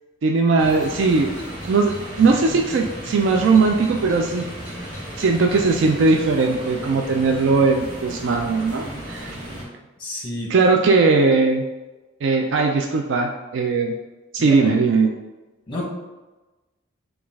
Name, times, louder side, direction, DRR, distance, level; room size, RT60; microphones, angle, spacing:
voice 1, 0.2-1.3 1.7-4.5 5.2-9.4 10.5-11.6 12.2-14.0 14.3-15.1, right 4 dB, 60° right, 2 dB, 0.3 m, -19 dB
sound 1, 0.6-9.6, equal, 40° right, 1.4 m, -34 dB
voice 2, 10.0-10.5 14.4-14.7 15.7-15.8, left 1 dB, 25° left, -3 dB, 1.0 m, -29 dB
5.0 x 2.4 x 3.5 m, 1.1 s
head